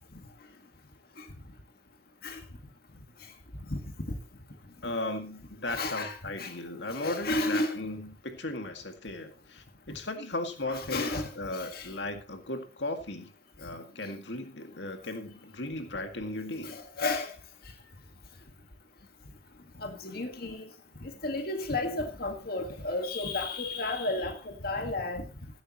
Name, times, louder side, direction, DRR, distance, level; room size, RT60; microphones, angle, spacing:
voice 1, 4.8-13.3 13.6-16.8, left 2 dB, 85° left, 2.1 m, -36 dB
voice 2, 5.7-6.5 6.9-7.8 10.7-11.9 16.6-17.3 19.8-20.7 21.0-25.3, left 2 dB, 60° left, 1.8 m, -33 dB
16.0 x 12.0 x 3.0 m
head